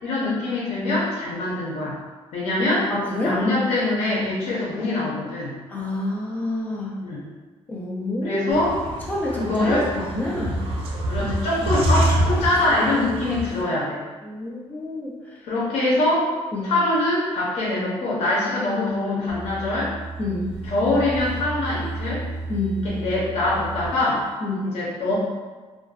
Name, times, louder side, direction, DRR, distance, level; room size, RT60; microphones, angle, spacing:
voice 1, 0.0-2.0 2.3-2.9 3.2-5.5 7.0-7.2 8.2-8.7 9.3-9.9 11.1-14.0 15.5-16.3 16.6-19.9 20.6-22.2 22.8-24.2 24.6-25.1, left 2 dB, 80° left, -6 dB, 0.7 m, -23 dB
voice 2, 2.9-3.4 5.7-7.0 7.7-8.5 9.1-10.6 14.2-15.1 16.5-16.7 20.2-20.5 22.5-22.9 24.4-24.7, left 2 dB, 15° left, -3 dB, 0.4 m, -27 dB
sound 1, 8.5-13.6, right 1 dB, 60° right, 0.4 m, -26 dB
sound 2, 19.3-24.3, right 3 dB, 15° right, 0.8 m, -33 dB
2.5 x 2.2 x 2.3 m, 1.3 s
cardioid pair, 175°, 11 cm